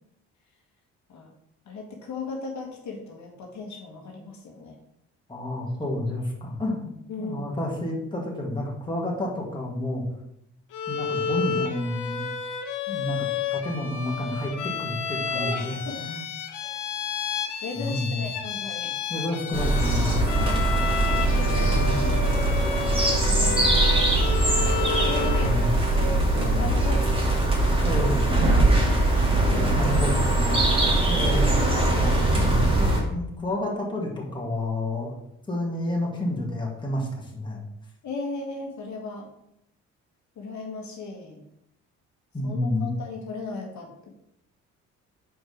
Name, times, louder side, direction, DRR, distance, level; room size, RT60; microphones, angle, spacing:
voice 1, 1.7-4.8 7.1-7.7 12.9-13.1 15.3-16.0 16.6-16.8 17.6-18.9 20.9-21.7 22.7-23.9 25.0-27.4 27.9-28.0 29.3-30.1 30.4-30.9 31.1-31.3 38.0-39.3 40.4-41.4 42.4-43.9, left 3 dB, 70° left, 0 dB, 1.6 m, -37 dB
voice 2, 5.3-6.9 7.2-10.0 10.9-12.3 12.9-13.3 13.5-16.2 17.8-18.2 19.1-20.7 21.7-22.2 25.4-25.7 27.8-28.3 29.5-30.7 31.1-31.6 32.4-35.2 35.5-37.6 42.3-43.0, left 1 dB, 15° left, -2 dB, 2.1 m, -30 dB
Bowed string instrument, 10.7-25.6, left 6 dB, 90° left, 1.0 m, -31 dB
sound 1, 19.5-33.0, right 2 dB, 20° right, 2.3 m, -21 dB
6.4 x 4.8 x 5.0 m, 0.78 s
cardioid pair, 90°, 30 cm